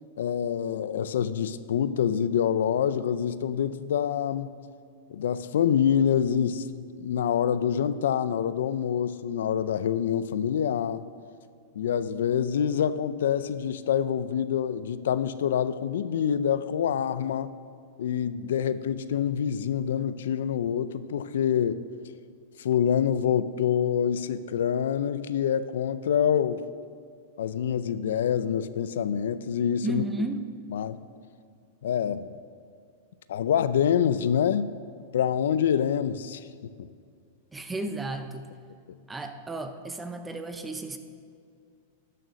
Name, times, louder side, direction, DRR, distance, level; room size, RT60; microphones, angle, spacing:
voice 1, 0.2-4.5 5.1-11.0 11.8-17.5 18.0-21.9 22.6-26.6 27.4-30.0 30.7-31.0 31.8-32.3 33.3-34.7 35.1-36.5 36.8-36.9, left 8 dB, 80° left, 14 dB, 0.5 m, -26 dB
voice 2, 29.8-30.4 37.5-38.5 39.1-41.0, right 2 dB, 10° right, 7 dB, 0.6 m, -33 dB
12.5 x 6.7 x 6.3 m, 2.2 s
supercardioid pair, 160°, 0 cm